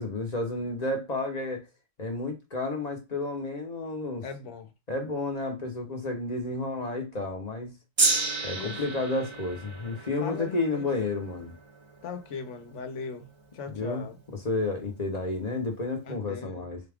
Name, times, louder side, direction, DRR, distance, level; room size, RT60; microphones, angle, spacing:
voice 1, 0.0-1.7 2.0-4.2 4.9-7.7 8.4-11.5 13.7-14.1 14.4-16.8, left 2 dB, 35° left, 0.9 m, -31 dB
voice 2, 4.2-4.7 8.5-9.0 10.2-10.8 12.0-13.3 13.5-14.2 16.0-16.7, left 5 dB, 65° left, 1.1 m, -39 dB
Gong, 8.0-14.3 15.1-15.2, right 3 dB, 30° right, 0.6 m, -32 dB
4.1 x 2.3 x 3.5 m
omnidirectional pair, 1.3 m